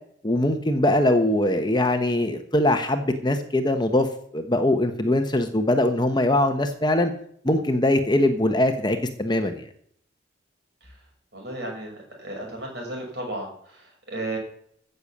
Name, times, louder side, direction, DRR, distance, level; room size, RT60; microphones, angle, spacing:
voice 1, 0.2-4.1 4.3-7.1 7.4-9.7, left 1 dB, 25° left, 7 dB, 1.1 m, -22 dB
voice 2, 11.3-14.4, right 1 dB, 60° right, 0 dB, 6.1 m, -34 dB
15.5 x 6.8 x 7.3 m, 0.65 s
head